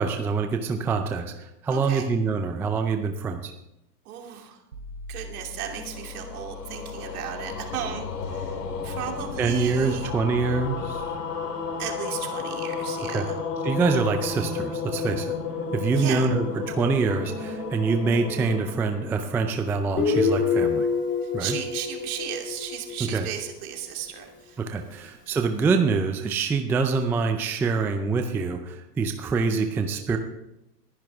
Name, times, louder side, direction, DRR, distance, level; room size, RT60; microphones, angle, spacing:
voice 1, 0.0-3.5 9.4-11.1 13.0-13.3 13.6-15.3 15.7-20.9 21.3-21.6 23.0-23.3 24.6-30.2, right 4 dB, 5° right, 6 dB, 0.4 m, -25 dB
voice 2, 1.7-2.1 4.0-4.6 5.1-10.1 11.8-13.3 15.9-16.3 21.2-24.6, right 10 dB, 60° right, 2 dB, 2.7 m, -35 dB
sound 1, 4.7-10.9, left 5 dB, 90° right, 3.3 m, -42 dB
sound 2, 5.4-19.9, left 5 dB, 75° left, 2.4 m, -33 dB
Guitar, 20.0-23.5, left 5 dB, 25° left, 2.8 m, -26 dB
21.0 x 10.5 x 3.5 m, 0.87 s
hypercardioid pair, 110°, 48 cm